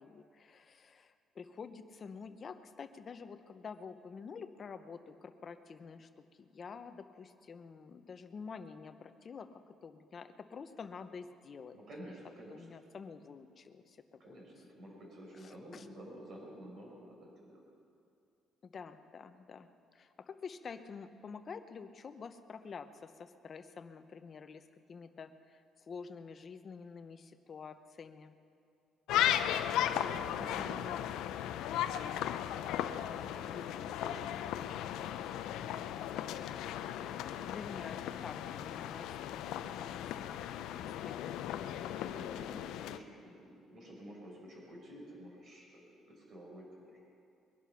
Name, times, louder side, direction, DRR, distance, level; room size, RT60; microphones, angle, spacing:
voice 1, 0.0-11.8 12.5-14.2 15.4-15.8 18.6-19.7 19.9-28.4 37.5-41.6, left 5 dB, 35° left, 9 dB, 0.8 m, -48 dB
voice 2, 11.7-12.8 14.2-17.6 29.5-31.0 33.0-35.8 36.6-37.4 40.8-41.2 42.0-47.0, equal, 45° right, -2 dB, 5.4 m, -51 dB
sound 1, 29.1-43.0, left 11 dB, 85° left, 0.6 m, -36 dB
22.0 x 11.0 x 5.8 m, 2.4 s
cardioid pair, 140°, 0 cm